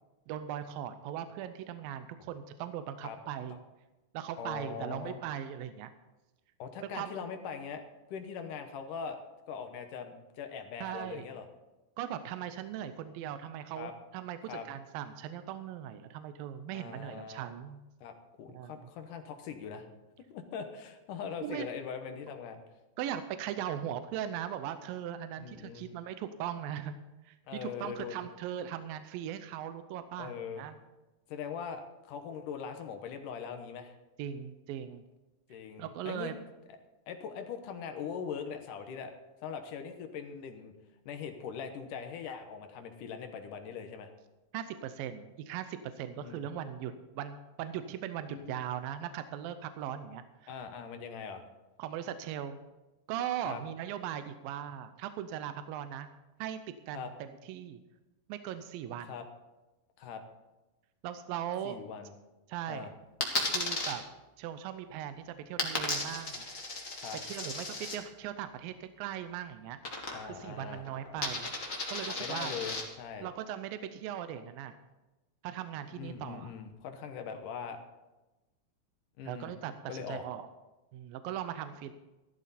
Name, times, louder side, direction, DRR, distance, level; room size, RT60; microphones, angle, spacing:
voice 1, 0.3-3.6 4.1-5.9 6.9-7.2 10.8-11.3 12.0-17.8 18.5-18.7 21.4-21.7 23.0-26.9 27.3-30.8 34.2-35.0 35.8-36.4 44.5-50.5 51.8-52.6 53.1-56.1 56.4-56.6 56.9-57.8 58.3-59.1 61.0-61.8 62.5-62.9 63.5-64.0 64.4-66.4 67.2-69.8 70.2-71.5 71.9-72.6 73.2-74.8 75.4-76.6 79.3-80.5 80.9-81.9, right 10 dB, 80° right, 10 dB, 2.5 m, -39 dB
voice 2, 4.4-5.2 6.6-7.8 8.1-9.2 9.5-11.5 13.8-13.9 14.5-14.7 16.7-17.4 18.0-19.9 20.3-22.6 25.4-25.9 27.5-28.2 30.2-30.7 31.3-33.9 35.5-36.3 37.1-39.1 39.4-40.7 41.1-44.1 46.2-46.5 48.3-48.6 50.5-51.4 53.5-53.6 56.9-57.1 59.0-59.2 60.0-60.2 61.6-62.1 62.7-62.9 67.0-67.2 70.1-70.9 72.1-73.3 76.0-77.8 79.2-79.6 79.9-80.2, left 6 dB, 70° left, 6 dB, 2.5 m, -41 dB
Coin (dropping), 63.2-63.9 65.6-68.0 69.8-70.5 70.7-72.8, left 3 dB, 30° left, 1.6 m, -35 dB
15.0 x 13.0 x 4.2 m, 1.1 s
omnidirectional pair, 4.1 m